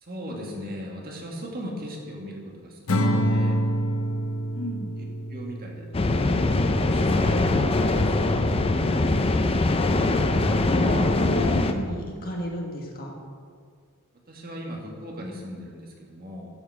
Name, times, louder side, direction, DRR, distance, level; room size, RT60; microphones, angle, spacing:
voice 1, 0.0-3.6 5.0-8.3 14.3-16.5, equal, 45° right, -1 dB, 1.8 m, -38 dB
Acoustic guitar / Strum, 2.9-6.2, equal, 70° left, 0.9 m, -26 dB
voice 2, 4.5-4.9 10.5-13.1, equal, 45° left, 0 dB, 1.7 m, -31 dB
sound 1, 5.9-11.7, left 2 dB, 25° left, 0.5 m, -22 dB
10.5 x 7.0 x 4.8 m, 2.1 s
head